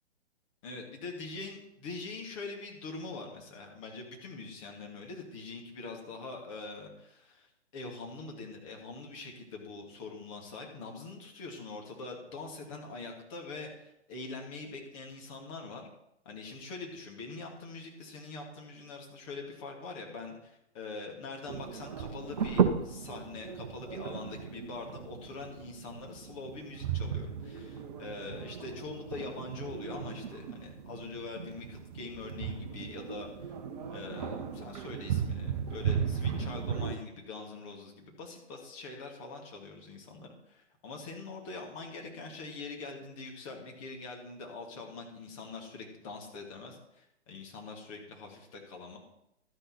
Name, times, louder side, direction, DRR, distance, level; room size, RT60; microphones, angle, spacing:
voice 1, 0.6-15.9 16.2-33.6 33.9-49.0, left 3 dB, 30° left, 1 dB, 2.4 m, -43 dB
sound 1, 21.5-37.0, right 7 dB, 35° right, 0.9 m, -35 dB
12.0 x 10.0 x 4.4 m, 0.81 s
figure-of-eight pair, 130°, 35 cm